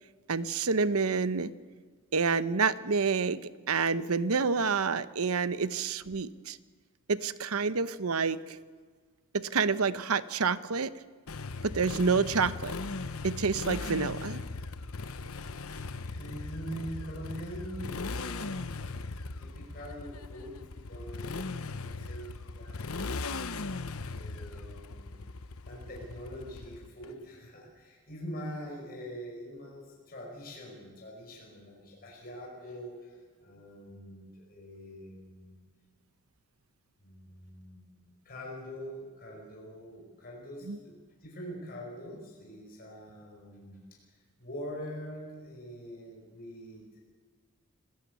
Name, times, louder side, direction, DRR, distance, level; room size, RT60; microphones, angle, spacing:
voice 1, 0.3-1.5 2.1-6.6 7.1-8.6 9.3-10.9 11.6-12.7 13.2-14.4 40.7-40.8, right 5 dB, 85° right, 14 dB, 0.9 m, -28 dB
Motorcycle, 11.3-27.1, left 3 dB, 80° left, 1.0 m, -38 dB
voice 2, 15.7-19.0 19.4-20.6 20.9-23.3 24.1-25.2 25.7-35.5 37.0-43.8 44.4-47.0, equal, 45° left, -2 dB, 5.5 m, -44 dB
26.5 x 16.0 x 8.2 m, 1.5 s
head